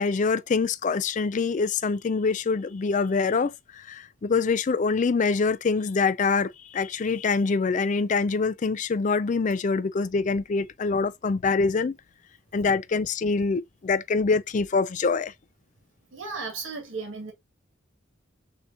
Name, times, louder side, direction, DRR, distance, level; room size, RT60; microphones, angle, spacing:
voice 1, 0.0-12.0 12.5-15.3, left 4 dB, 40° left, 0.4 m, -25 dB
voice 2, 16.1-17.3, right 4 dB, 80° right, 2.0 m, -35 dB
6.7 x 2.8 x 2.4 m
head